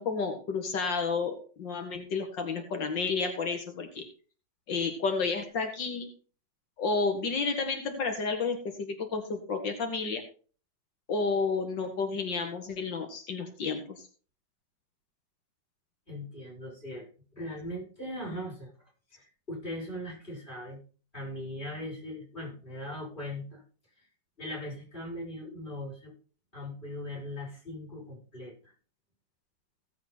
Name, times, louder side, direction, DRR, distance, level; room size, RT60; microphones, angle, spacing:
voice 1, 0.0-4.0 4.7-6.1 6.8-10.2 11.1-14.1, left 4 dB, 85° left, 5 dB, 2.5 m, -31 dB
voice 2, 16.1-17.1 17.3-18.7 19.1-20.8 21.1-23.6 24.0-24.1 24.4-26.1 26.5-28.7, left 1 dB, 25° left, -2 dB, 7.3 m, -39 dB
16.5 x 8.1 x 4.2 m, 0.37 s
omnidirectional pair, 1.9 m